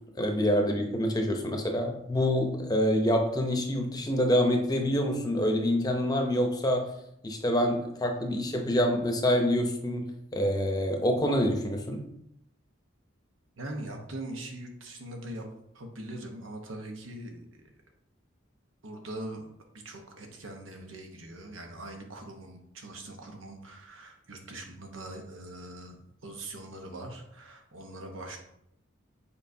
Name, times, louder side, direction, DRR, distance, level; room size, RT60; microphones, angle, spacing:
voice 1, 0.2-6.9 7.2-12.0, equal, 20° left, 3 dB, 0.7 m, -26 dB
voice 2, 13.6-15.4 15.7-17.7 18.8-19.5 19.8-28.4, right 1 dB, 85° right, 3 dB, 1.1 m, -42 dB
7.3 x 4.8 x 2.7 m, 0.78 s
head